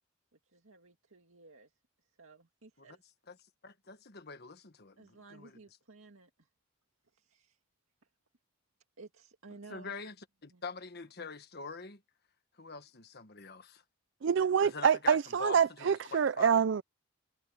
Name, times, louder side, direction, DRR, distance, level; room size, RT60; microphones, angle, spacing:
voice 1, 0.5-1.7 2.2-3.0 5.0-6.5 7.1-7.6 9.0-10.0 10.5-10.6, right 3 dB, 85° right, 2.1 m, -55 dB
voice 2, 3.6-5.6 9.7-10.1 10.4-12.0 12.6-13.8 14.6-16.6, left 4 dB, 50° left, 1.4 m, -44 dB
voice 3, 14.2-16.8, right 7 dB, 60° right, 0.4 m, -26 dB
head